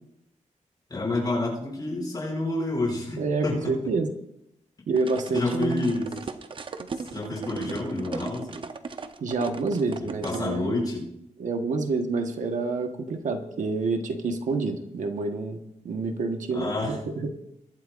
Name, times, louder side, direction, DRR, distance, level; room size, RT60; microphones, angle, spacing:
voice 1, 0.9-3.7 5.3-6.1 7.1-8.6 10.0-11.1 16.5-17.0, left 2 dB, 30° left, -4 dB, 6.4 m, -29 dB
voice 2, 3.2-4.1 4.9-5.9 9.2-10.8 11.4-15.6 15.8-17.3, right 3 dB, 80° right, 5 dB, 1.4 m, -28 dB
sound 1, 5.0-10.4, right 4 dB, 40° right, 0.7 m, -38 dB
22.5 x 12.0 x 2.6 m, 0.80 s
wide cardioid pair, 155°, 13 cm